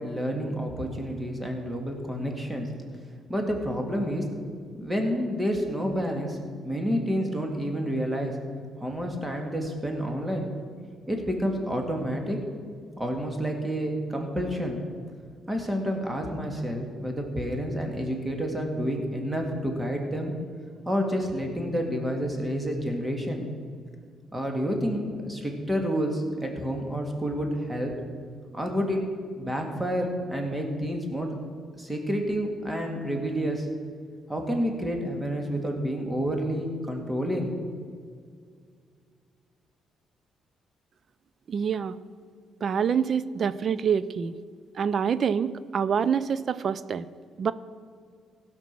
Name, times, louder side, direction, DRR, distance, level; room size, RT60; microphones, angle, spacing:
voice 1, 0.0-2.7 3.3-4.2 4.8-6.4 6.6-8.3 8.8-10.5 11.1-12.4 13.0-14.8 15.5-20.3 20.9-23.5 24.3-27.9 28.5-29.0 29.4-31.3 31.7-33.7 34.3-37.5, equal, 15° right, 2 dB, 2.1 m, -29 dB
voice 2, 41.5-41.9 42.6-44.3 44.8-47.0 47.4-47.5, right 7 dB, 50° right, 16 dB, 0.5 m, -26 dB
16.0 x 6.0 x 6.1 m, 2.1 s
cardioid pair, 90°, 0 cm